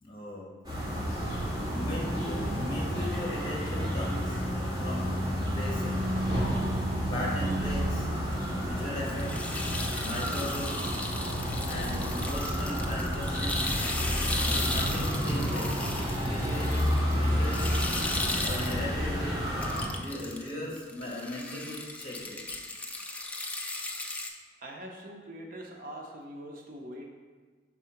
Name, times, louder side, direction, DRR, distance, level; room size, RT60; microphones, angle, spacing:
voice 1, 0.0-0.5 1.7-5.2 5.5-6.0 7.1-8.1 8.6-9.5 10.0-10.9 11.7-13.7 14.5-15.8 16.2-17.8 18.4-19.5 19.9-22.4, left 1 dB, 30° left, -4 dB, 1.4 m, -38 dB
sound 1, 0.6-19.8, equal, 20° right, 1.8 m, -30 dB
sound 2, 8.3-8.5 9.0-18.9 19.5-20.5 20.8-24.3, left 2 dB, 10° left, 0.3 m, -36 dB
voice 2, 24.6-27.1, right 1 dB, 50° right, 0 dB, 0.7 m, -43 dB
4.7 x 3.7 x 5.7 m, 1.4 s
head